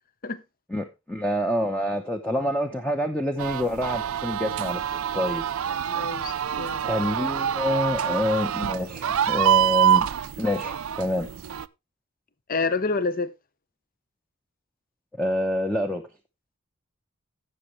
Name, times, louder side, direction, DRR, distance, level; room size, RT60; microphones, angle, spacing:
voice 1, 0.7-4.8 5.1-5.4 6.8-10.1 10.4-11.3 15.2-16.0, left 1 dB, 5° left, 0.8 m, -27 dB
sound 1, 3.4-11.7, right 9 dB, 85° right, 0.5 m, -26 dB
voice 2, 5.9-6.9 12.5-13.3, left 3 dB, 40° left, 0.7 m, -28 dB
16.5 x 6.2 x 3.1 m
head